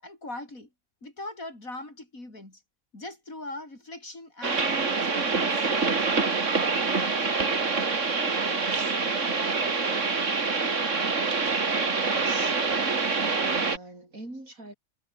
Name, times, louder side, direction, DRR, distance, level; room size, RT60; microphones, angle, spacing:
voice 1, 0.0-0.7 1.0-2.6 2.9-5.7, left 2 dB, 85° left, 7.3 m, -41 dB
sound 1, 4.4-13.8, right 4 dB, 60° right, 2.7 m, -26 dB
voice 2, 12.0-13.0 13.6-14.7, right 1 dB, 80° right, 8.5 m, -44 dB
omnidirectional pair, 1.4 m